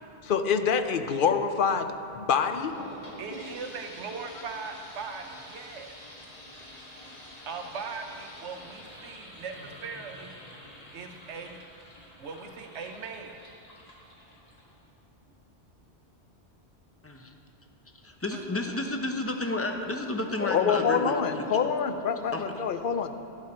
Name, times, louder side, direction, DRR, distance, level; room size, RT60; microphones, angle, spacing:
voice 1, 0.2-2.8 20.4-23.1, left 6 dB, 55° left, 8 dB, 0.7 m, -26 dB
sound 1, 2.6-14.9, left 1 dB, 35° left, 1.9 m, -47 dB
voice 2, 3.2-5.9 7.5-10.3 10.9-11.6 12.2-13.5 18.3-18.4, right 5 dB, 80° right, 5 dB, 1.1 m, -39 dB
voice 3, 17.0-17.3 17.9-21.6 22.3-22.6, left 2 dB, 15° left, 3 dB, 0.7 m, -32 dB
11.5 x 11.0 x 4.4 m, 2.6 s
omnidirectional pair, 1.1 m